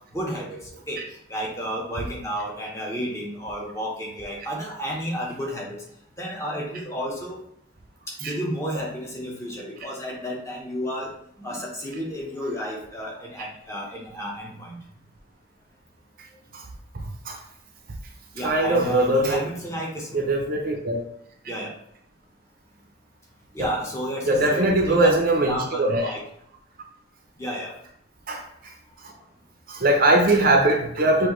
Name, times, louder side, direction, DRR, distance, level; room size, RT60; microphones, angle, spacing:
voice 1, 0.1-0.6 0.9-1.0 1.3-5.8 6.2-7.4 8.2-11.1 11.4-14.8 18.3-20.2 21.4-21.7 23.5-25.2 25.5-26.2 27.4-27.7, equal, 15° left, -3 dB, 1.0 m, -31 dB
voice 2, 18.4-19.4 20.1-21.0 23.6-23.7 24.3-26.1 28.3-28.4 29.7-31.3, right 2 dB, 45° right, 1 dB, 0.6 m, -21 dB
6.1 x 2.6 x 3.1 m, 0.70 s
head